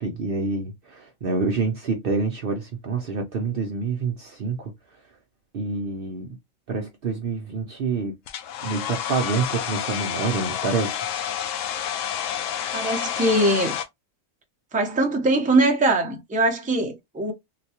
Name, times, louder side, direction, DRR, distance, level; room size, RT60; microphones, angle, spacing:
voice 1, 0.0-4.7 5.5-6.4 6.7-8.2 8.6-11.0, right 4 dB, 55° right, 0.7 m, -27 dB
Domestic sounds home sounds, 8.3-13.8, left 9 dB, 75° left, 1.0 m, -29 dB
voice 2, 12.7-13.8 14.7-17.3, right 2 dB, 10° right, 0.5 m, -22 dB
3.9 x 2.2 x 2.8 m
omnidirectional pair, 1.4 m